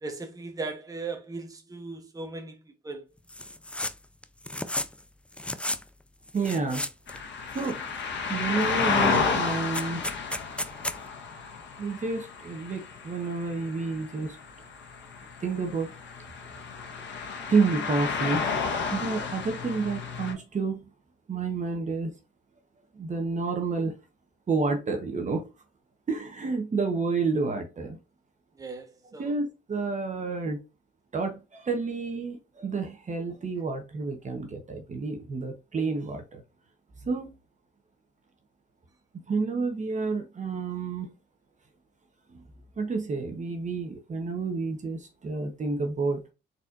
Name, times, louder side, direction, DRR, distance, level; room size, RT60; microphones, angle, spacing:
voice 1, 0.0-3.0 28.6-29.3, right 3 dB, 20° right, 1.2 m, -38 dB
sound 1, 3.3-3.9 4.2-5.0 5.3-5.8 6.3-7.2 7.5-8.1 8.6-8.7 9.0-11.0, left 1 dB, 5° left, 0.4 m, -34 dB
voice 2, 6.3-6.9 7.5-7.8 8.3-10.0 11.8-14.4 15.4-15.9 17.2-20.9 21.3-22.1 22.9-23.9 24.5-25.5 26.1-28.0 29.2-30.6 31.1-36.4 37.0-37.3 39.3-41.1 42.3-42.4 42.8-46.2, right 4 dB, 35° right, 1.2 m, -30 dB
sound 2, 7.1-20.3, left 5 dB, 65° left, 1.5 m, -32 dB
4.3 x 4.1 x 2.6 m
cardioid pair, 90°, 20 cm